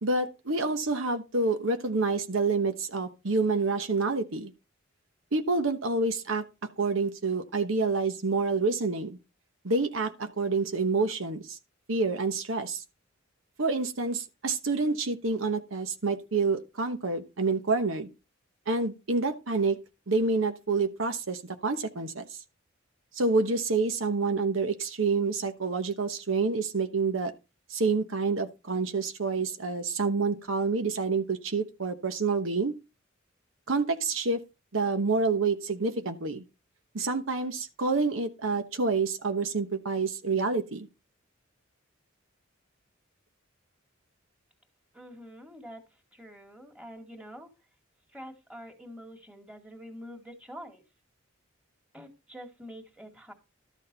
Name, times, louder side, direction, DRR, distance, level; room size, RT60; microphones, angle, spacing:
voice 1, 0.0-4.5 5.3-6.4 6.8-9.2 9.6-11.6 11.9-12.8 13.6-18.1 18.7-19.8 20.1-22.3 23.1-27.3 27.7-32.7 33.7-34.4 34.7-36.4 36.9-40.9, right 3 dB, 75° right, 1.1 m, -28 dB
voice 2, 44.9-45.8 46.1-47.5 48.1-50.8 51.9-53.3, equal, 5° right, 2.1 m, -46 dB
12.5 x 6.4 x 4.0 m
head